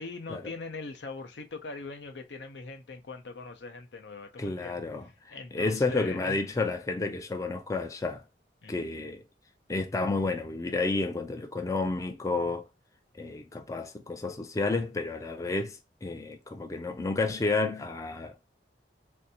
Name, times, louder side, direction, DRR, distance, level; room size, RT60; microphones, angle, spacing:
voice 1, 0.0-4.8 5.3-6.4 8.6-9.1, left 3 dB, 80° left, 0.7 m, -41 dB
voice 2, 4.4-8.2 8.7-9.2 9.7-12.7 13.1-18.4, left 3 dB, 20° left, 0.3 m, -31 dB
3.4 x 2.6 x 2.7 m
head